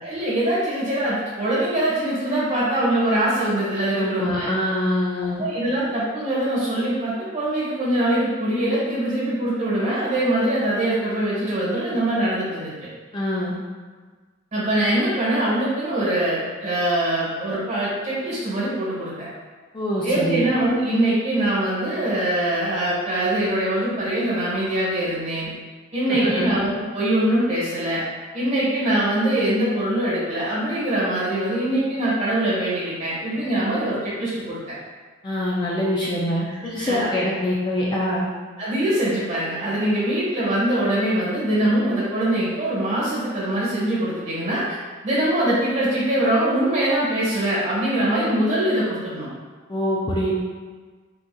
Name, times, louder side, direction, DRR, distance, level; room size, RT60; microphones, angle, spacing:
voice 1, 0.0-4.5 5.4-12.7 14.5-19.3 20.0-25.5 25.9-28.0 28.3-34.7 36.7-37.1 38.6-44.8 45.0-49.3, right 1 dB, 35° right, -8 dB, 1.2 m, -23 dB
voice 2, 3.9-5.4 13.1-13.6 19.7-20.5 26.1-26.5 35.2-38.3 49.7-50.3, left 1 dB, 20° left, -5 dB, 0.3 m, -24 dB
3.6 x 2.7 x 2.2 m, 1.4 s
head